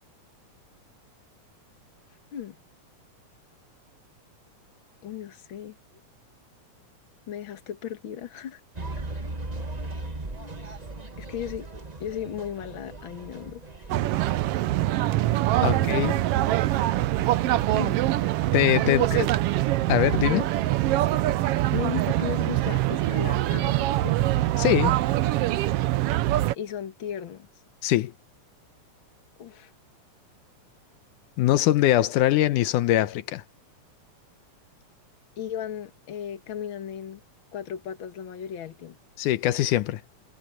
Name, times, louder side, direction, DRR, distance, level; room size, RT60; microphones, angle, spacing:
voice 1, 5.0-5.8 7.3-8.6 11.2-11.7 12.0-13.6 15.5-16.5 17.7-18.1 18.8-19.1 20.2-20.5 21.7-24.2 26.5-27.5 29.4-29.7 35.4-37.2 37.5-39.0, left 9 dB, 45° left, 2.1 m, -35 dB
sound 1, 8.7-15.7, right 2 dB, 50° right, 0.4 m, -38 dB
sound 2, 13.9-26.5, right 15 dB, 85° right, 1.3 m, -24 dB
voice 2, 15.6-16.2 18.5-19.3 19.9-20.4 24.6-25.0 27.8-28.1 31.4-33.4 39.2-40.0, left 14 dB, 90° left, 2.4 m, -22 dB
omnidirectional pair, 3.5 m